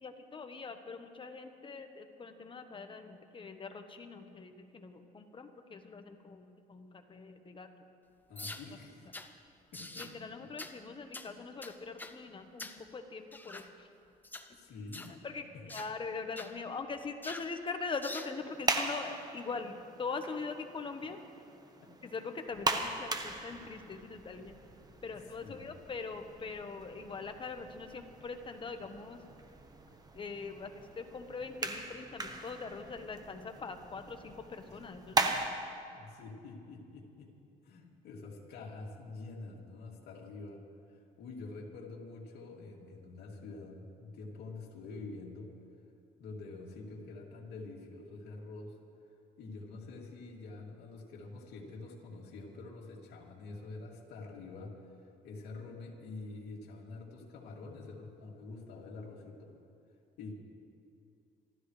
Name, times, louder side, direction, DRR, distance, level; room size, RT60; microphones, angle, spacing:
voice 1, 0.0-7.7 10.0-13.9 15.2-15.4 15.7-21.2 22.1-24.6 25.0-29.2 30.1-35.5, left 4 dB, 30° left, 6 dB, 1.2 m, -42 dB
voice 2, 8.3-9.1 9.7-10.5 14.5-15.1 15.5-15.6 21.0-21.1 21.8-21.9 25.1-25.7 34.7-34.8 35.8-37.3 37.6-40.6 40.9-45.5 46.2-48.8 49.4-54.9 55.2-59.5 60.2-60.3, left 3 dB, 75° left, -2 dB, 2.8 m, -47 dB
sound 1, 8.4-8.7 9.1-9.3 9.7-10.2 10.6-10.8 11.1-11.3 11.6-12.2 12.6-12.8 13.3-13.7 14.2-14.5 14.9-15.2 15.7-15.9 16.4-16.5 17.2-17.5 18.0-18.3, left 2 dB, 10° left, 0.8 m, -45 dB
sound 2, 18.4-35.5, right 3 dB, 25° right, 1.2 m, -39 dB
28.0 x 13.0 x 3.3 m, 2.5 s
cardioid pair, 110°, 17 cm